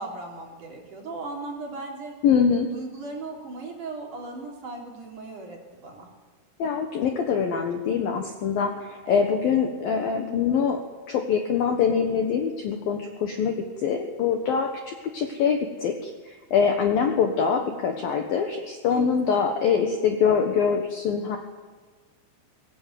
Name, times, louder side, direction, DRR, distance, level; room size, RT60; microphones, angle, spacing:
voice 1, 0.0-2.1 2.7-6.1 9.0-9.3 18.9-19.5, right 3 dB, 40° right, 0 dB, 4.3 m, -37 dB
voice 2, 2.2-2.7 6.6-21.4, left 6 dB, 65° left, 4 dB, 2.4 m, -24 dB
22.0 x 18.0 x 9.4 m, 1.4 s
omnidirectional pair, 6.0 m